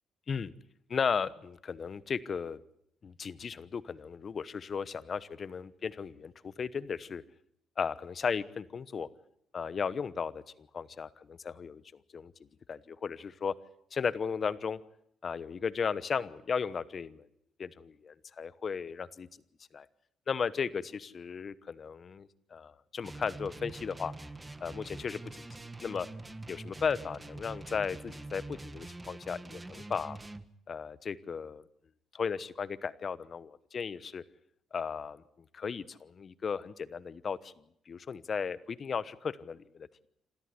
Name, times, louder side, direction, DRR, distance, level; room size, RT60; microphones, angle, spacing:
voice 1, 0.9-2.6 3.0-7.2 7.8-9.1 9.5-11.8 12.1-12.3 12.7-13.5 13.9-14.8 15.2-17.3 17.6-19.3 19.7-19.9 20.3-24.1 24.6-25.5 25.8-26.1 26.5-30.2 30.7-31.6 32.1-34.2 34.7-35.2 35.5-37.5 37.9-39.9, left 6 dB, 45° left, 17 dB, 1.1 m, -35 dB
sound 1, 23.0-30.5, right 2 dB, 15° right, 1.3 m, -45 dB
27.0 x 13.5 x 9.6 m, 0.75 s
cardioid pair, 90°, 0 cm